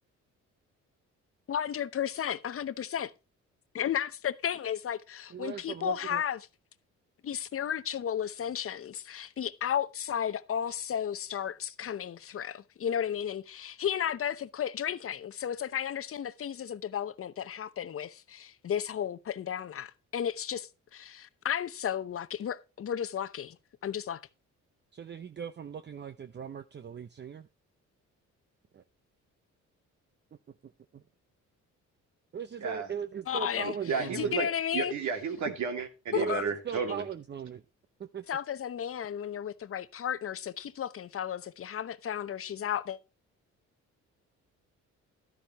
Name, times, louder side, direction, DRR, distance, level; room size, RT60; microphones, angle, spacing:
voice 1, 1.5-3.1 3.7-6.4 7.2-23.6 23.8-24.2 33.3-34.9 36.1-36.4 38.3-43.0, left 9 dB, 50° left, 0.8 m, -33 dB
voice 2, 5.3-6.2 24.9-27.5 28.7-28.8 30.6-31.0 32.3-34.3 35.5-35.6 36.2-37.6 38.0-38.2, right 7 dB, 35° right, 0.7 m, -39 dB
voice 3, 33.9-34.5 34.7-37.1, right 5 dB, 70° right, 2.5 m, -32 dB
12.5 x 10.0 x 3.0 m
cardioid pair, 90°, 30 cm